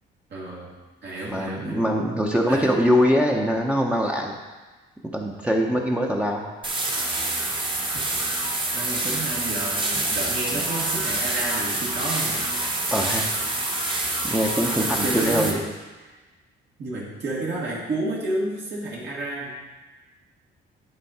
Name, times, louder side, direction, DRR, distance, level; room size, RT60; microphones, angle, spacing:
voice 1, 0.3-0.7 1.0-1.9 2.5-2.8 7.9-8.1 8.7-12.5 15.0-15.7 16.0-16.1 16.8-19.5, right 2 dB, 60° right, -6 dB, 2.0 m, -31 dB
voice 2, 1.3-4.3 5.1-6.5 12.9-13.3 14.2-15.5, equal, 5° right, -1 dB, 0.8 m, -23 dB
sound 1, 6.6-15.5, right 2 dB, 25° right, 1.2 m, -26 dB
10.5 x 3.8 x 4.2 m, 1.2 s
cardioid pair, 90°, 20 cm